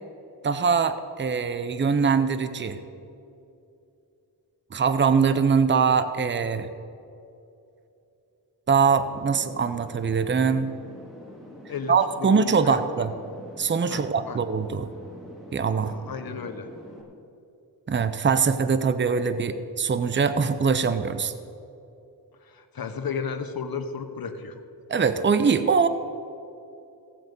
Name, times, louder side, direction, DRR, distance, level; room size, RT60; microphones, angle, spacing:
voice 1, 0.4-2.8 4.7-6.7 8.7-10.8 11.9-13.1 13.6-14.9 15.5-16.0 17.9-21.3 24.9-25.9, right 5 dB, 30° right, 11 dB, 0.7 m, -22 dB
sound 1, 9.0-17.0, left 1 dB, ahead, 2.5 m, -45 dB
voice 2, 11.7-13.1 13.9-14.4 15.8-16.7 22.4-24.6, left 6 dB, 60° left, 7 dB, 1.2 m, -34 dB
16.5 x 7.7 x 5.3 m, 2.7 s
cardioid pair, 75°, 40 cm